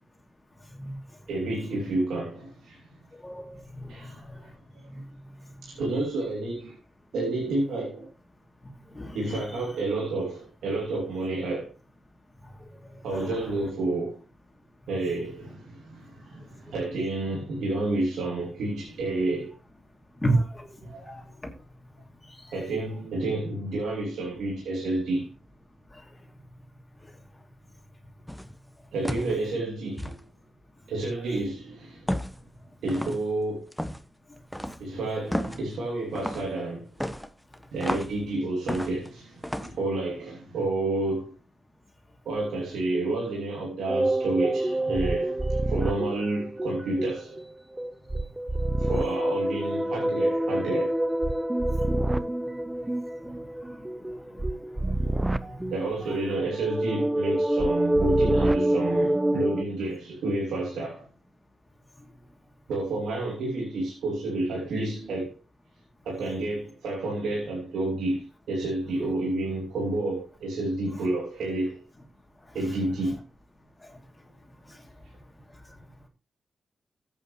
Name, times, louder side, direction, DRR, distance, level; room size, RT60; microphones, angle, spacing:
voice 1, 0.7-1.0 3.1-4.6 4.8-5.7 8.9-9.2 12.4-13.5 16.3-16.5 20.2-21.5 22.2-22.7 25.9-26.2 27.0-27.2 34.3-34.7 51.8-52.3 52.8-55.7 72.4-72.6 73.8-74.0 74.7-74.9 75.5-75.8, right 1 dB, 25° left, 3.1 m, -36 dB
voice 2, 1.3-2.8 3.9-4.5 4.8-5.0 5.6-6.8 7.1-8.1 9.1-11.7 13.0-14.2 14.9-19.5 20.8-21.2 22.5-25.3 28.9-30.1 30.9-32.2 32.8-33.7 34.8-36.9 37.7-41.3 42.2-47.4 48.8-51.0 55.7-61.1 62.7-65.3 66.0-71.8 72.5-73.2, right 2 dB, 90° right, 3.0 m, -30 dB
sound 1, 28.3-28.6 29.0-29.4 30.0-30.2 32.1-32.4 32.9-33.2 33.7-34.0 34.5-34.8 35.3-35.6 36.1-36.5 37.0-38.2 38.7-39.1 39.4-39.7, equal, ahead, 1.1 m, -32 dB
sound 2, 43.9-47.4 47.8-59.6, right 1 dB, 15° right, 0.6 m, -27 dB
13.5 x 8.7 x 3.2 m
cardioid pair, 65°, 0 cm